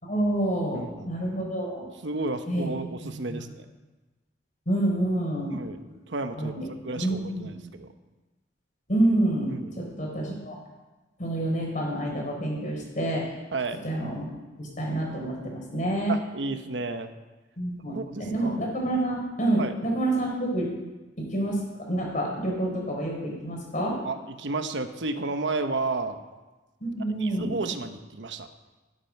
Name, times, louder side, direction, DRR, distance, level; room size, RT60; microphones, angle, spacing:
voice 1, 0.0-1.9 2.5-2.7 3.0-3.4 4.7-5.5 6.4-6.7 7.0-7.5 8.9-10.6 11.2-13.3 13.8-14.2 14.6-16.2 17.6-20.7 21.2-21.6 21.9-23.9 26.8-27.6, right 1 dB, 45° left, -1 dB, 4.4 m, -28 dB
voice 2, 0.7-1.1 2.0-3.6 5.5-6.5 6.8-7.9 9.5-9.8 13.5-13.8 16.1-17.1 17.9-18.6 19.6-19.7 24.0-26.2 27.2-28.5, right 3 dB, 90° right, 8 dB, 1.0 m, -32 dB
12.5 x 9.9 x 5.9 m, 1.1 s
head